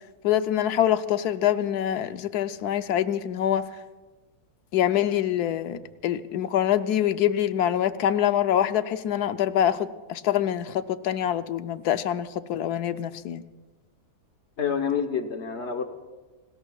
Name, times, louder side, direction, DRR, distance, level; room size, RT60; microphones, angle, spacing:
voice 1, 0.2-3.7 4.7-13.4, left 10 dB, 80° left, 11 dB, 1.2 m, -25 dB
voice 2, 14.6-15.9, left 6 dB, 50° left, 6 dB, 1.3 m, -27 dB
28.5 x 19.5 x 2.3 m, 1.3 s
omnidirectional pair, 1.6 m